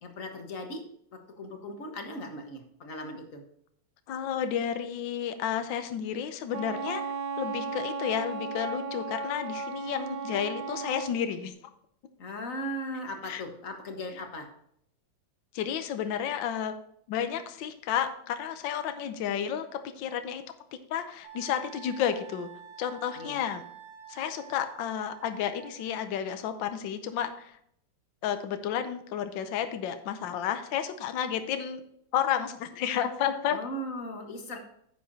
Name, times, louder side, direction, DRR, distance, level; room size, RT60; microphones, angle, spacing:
voice 1, 0.0-0.8 1.1-3.4 12.2-14.5 23.2-23.4 33.5-34.6, equal, 45° left, 4 dB, 1.7 m, -38 dB
voice 2, 4.1-7.0 7.4-11.5 13.3-13.4 15.5-16.7 17.1-20.4 20.9-22.5 22.8-23.6 24.1-27.6 28.2-31.8 32.1-33.6, left 9 dB, 70° left, 9 dB, 1.5 m, -31 dB
Wind instrument woodwind instrument, 6.5-11.1, right 4 dB, 70° right, 1.7 m, -35 dB
Wind instrument woodwind instrument 2, 21.2-26.1, right 9 dB, 50° right, 4.2 m, -48 dB
10.0 x 8.6 x 2.8 m, 0.70 s
omnidirectional pair, 2.1 m